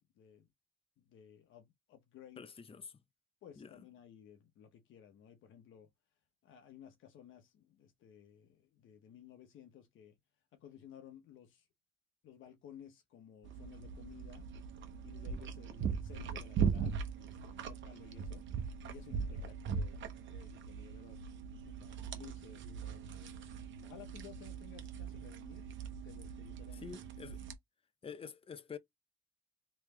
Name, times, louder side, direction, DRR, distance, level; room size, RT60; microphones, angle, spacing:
voice 1, 0.2-0.5 1.0-2.4 3.4-5.9 6.4-10.2 10.5-11.7 12.2-14.5 15.0-18.5 18.8-20.0 20.3-21.2 21.5-23.1 23.8-25.7 26.0-27.0, left 9 dB, 80° left, 1.0 m, -56 dB
voice 2, 2.4-3.0 3.6-3.8 26.7-27.4 28.0-28.8, left 6 dB, 30° left, 0.6 m, -48 dB
sound 1, 13.4-27.5, right 6 dB, 70° right, 0.9 m, -40 dB
3.5 x 3.1 x 3.3 m
cardioid pair, 90°, 20 cm